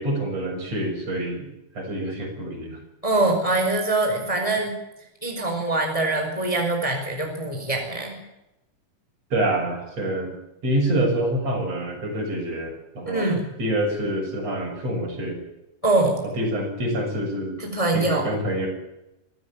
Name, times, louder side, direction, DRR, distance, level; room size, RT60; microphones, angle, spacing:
voice 1, 0.0-1.5 1.7-2.8 9.3-10.3 10.6-15.4 16.2-17.5 17.9-18.7, right 1 dB, 45° right, 2 dB, 7.5 m, -26 dB
voice 2, 3.0-4.7 5.2-8.2 13.1-13.5 15.8-16.2 17.6-18.3, right 2 dB, 10° left, 3 dB, 4.5 m, -23 dB
25.5 x 15.0 x 8.7 m, 0.92 s
omnidirectional pair, 4.1 m